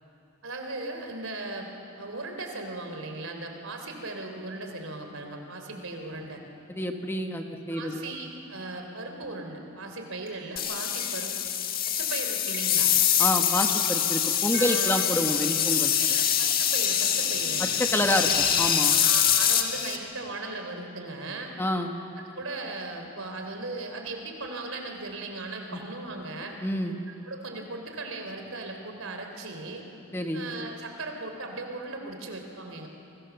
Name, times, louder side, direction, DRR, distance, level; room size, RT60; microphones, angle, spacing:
voice 1, 0.4-6.4 7.7-11.5 11.8-12.9 14.5-15.1 16.0-17.7 17.9-18.3 18.9-21.5 22.4-26.6 27.2-29.8 30.3-32.9, right 2 dB, 75° right, 4 dB, 3.4 m, -37 dB
voice 2, 6.7-8.0 13.2-15.9 17.6-19.0 21.6-21.9 25.7-25.8 26.6-26.9 30.1-30.4, left 1 dB, 10° left, 4 dB, 1.2 m, -28 dB
sound 1, 10.3-10.4 11.0-11.3 11.8-12.1 12.5-12.9 13.2-14.0 14.5-15.8, right 4 dB, 55° right, 4.6 m, -45 dB
sound 2, 10.6-20.0, left 9 dB, 45° left, 1.6 m, -24 dB
29.5 x 23.5 x 7.0 m, 3.0 s
head